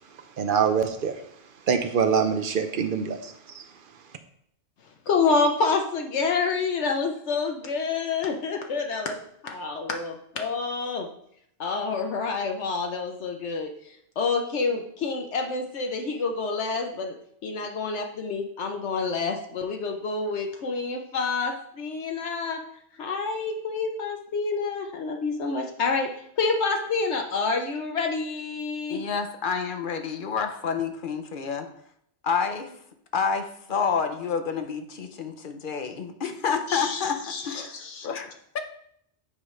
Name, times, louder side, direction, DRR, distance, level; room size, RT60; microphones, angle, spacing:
voice 1, 0.4-1.1 1.7-3.6, right 6 dB, 55° right, 8 dB, 0.7 m, -24 dB
voice 2, 4.8-11.1 11.6-22.6 23.0-29.0 36.7-38.1, left 4 dB, 75° left, 3 dB, 1.0 m, -28 dB
voice 3, 28.9-31.7 32.2-32.7 33.1-37.7 38.0-38.6, left 6 dB, 55° left, 7 dB, 0.7 m, -29 dB
8.7 x 5.0 x 3.2 m, 0.70 s
omnidirectional pair, 1.2 m